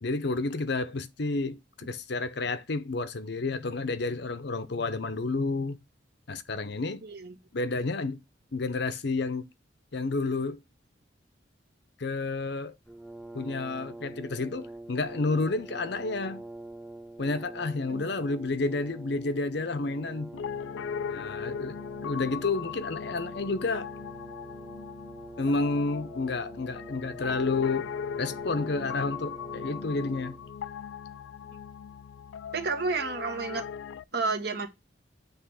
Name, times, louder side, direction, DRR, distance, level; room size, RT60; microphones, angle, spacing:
voice 1, 0.0-5.8 6.3-7.0 7.5-8.2 8.5-9.4 9.9-10.6 12.0-12.8 13.3-16.4 17.2-20.3 21.1-23.9 25.4-27.9 28.2-30.4, left 3 dB, 60° left, 0.7 m, -30 dB
voice 2, 7.0-7.3 17.9-18.0 32.5-33.6 34.1-34.7, right 4 dB, 55° right, 1.3 m, -30 dB
Brass instrument, 12.8-30.6, right 1 dB, 5° left, 0.7 m, -45 dB
Piano, 20.3-34.0, left 7 dB, 80° left, 0.3 m, -39 dB
7.9 x 3.2 x 6.2 m
head